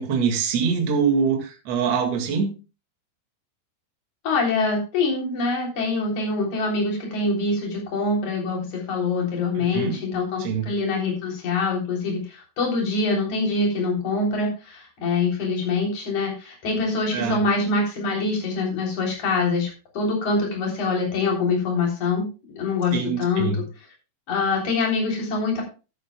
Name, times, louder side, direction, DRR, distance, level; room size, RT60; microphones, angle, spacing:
voice 1, 0.0-2.5 9.6-10.0 10.4-10.7 17.1-17.4 22.9-23.6, right 6 dB, 45° right, 3 dB, 2.2 m, -24 dB
voice 2, 4.2-22.3 22.5-23.5 24.3-25.6, left 3 dB, 40° left, -1 dB, 4.4 m, -24 dB
14.5 x 11.0 x 2.3 m, 0.31 s
omnidirectional pair, 5.5 m